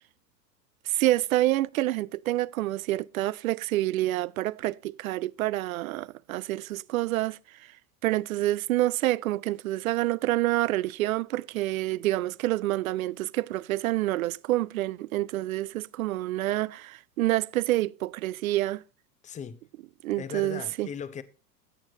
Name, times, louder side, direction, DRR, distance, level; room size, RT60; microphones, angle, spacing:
voice 1, 0.9-7.4 8.0-18.8 20.0-20.9, right 16 dB, 55° right, 0.5 m, -27 dB
voice 2, 19.2-19.6 20.2-21.2, left 7 dB, 15° left, 0.8 m, -38 dB
16.5 x 8.9 x 2.8 m
figure-of-eight pair, 90°, 49 cm